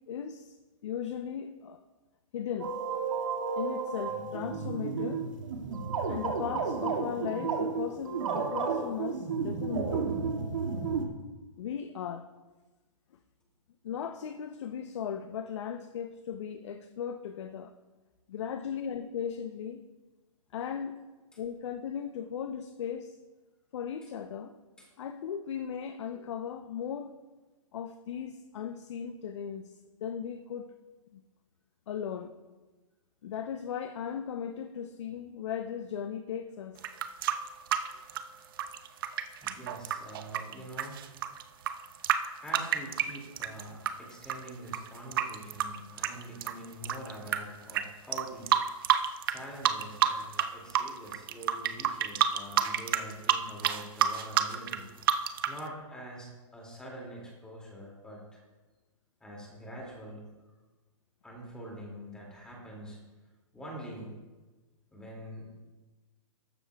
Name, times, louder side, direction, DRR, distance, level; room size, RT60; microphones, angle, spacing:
voice 1, 0.1-0.6 0.8-1.9 2.3-2.8 3.6-5.3 6.1-10.1 11.6-12.3 13.8-17.7 18.3-19.8 20.5-21.0 21.4-23.2 23.7-24.5 25.0-27.2 27.7-29.8 30.0-30.7 31.1-31.2 31.9-32.3 33.2-36.9, left 8 dB, 55° left, 0.7 m, -37 dB
sound 1, 2.6-11.0, right 5 dB, 65° right, 2.0 m, -32 dB
sound 2, 36.8-43.9 44.2-47.4 47.7-47.8 48.1-49.4 49.6-50.5 50.7-55.6, right 10 dB, 40° right, 0.7 m, -28 dB
voice 2, 39.4-41.0 42.4-49.0 49.3-54.9 55.5-58.4 59.2-60.4 61.2-63.1 63.5-64.2 64.9-65.5, equal, 5° left, 2.3 m, -45 dB
14.0 x 12.5 x 2.3 m
hypercardioid pair, 160°, 18 cm